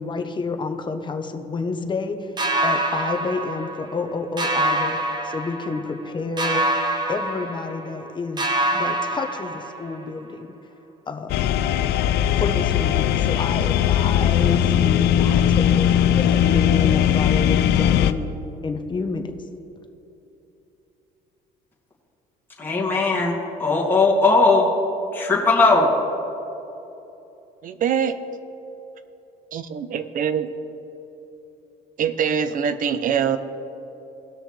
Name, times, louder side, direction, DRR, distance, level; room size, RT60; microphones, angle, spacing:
voice 1, 0.0-2.3 2.6-5.0 5.2-6.6 7.1-8.4 8.7-10.5 11.1-11.5 12.4-18.2 18.6-19.2, left 4 dB, 25° left, 6 dB, 0.9 m, -29 dB
sound 1, 2.4-4.1 4.4-6.0 6.4-8.1 8.4-10.1, right 1 dB, 25° right, 0.9 m, -25 dB
sound 2, 11.3-18.1, left 10 dB, 75° left, 0.5 m, -19 dB
voice 2, 22.6-24.7 25.1-25.9, left 3 dB, 10° left, -6 dB, 2.5 m, -18 dB
voice 3, 27.6-28.2 29.5-30.5 32.0-33.4, right 7 dB, 55° right, 12 dB, 0.7 m, -23 dB
18.5 x 6.3 x 3.3 m, 3.0 s
cardioid pair, 110°, 17 cm